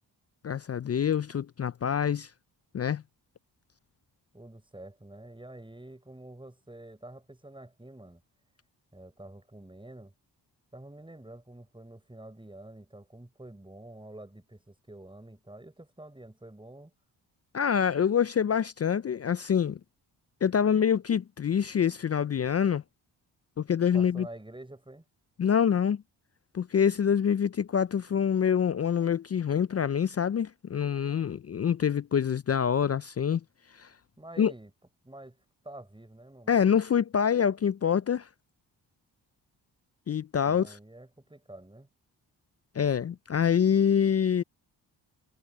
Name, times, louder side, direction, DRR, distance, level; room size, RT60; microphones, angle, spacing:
voice 1, 0.4-2.3 2.7-3.0 17.5-19.8 20.4-22.8 23.6-24.3 25.4-26.0 26.5-33.4 33.8-33.9 34.4-34.5 36.5-38.3 40.1-40.8 42.7-44.4, left 8 dB, 35° left, 0.5 m, -26 dB
voice 2, 4.3-8.2 8.9-10.1 10.7-16.9 23.9-25.0 34.2-34.7 35.0-36.6 40.5-41.9, right 1 dB, 10° right, 5.1 m, -48 dB
supercardioid pair, 55°, 43 cm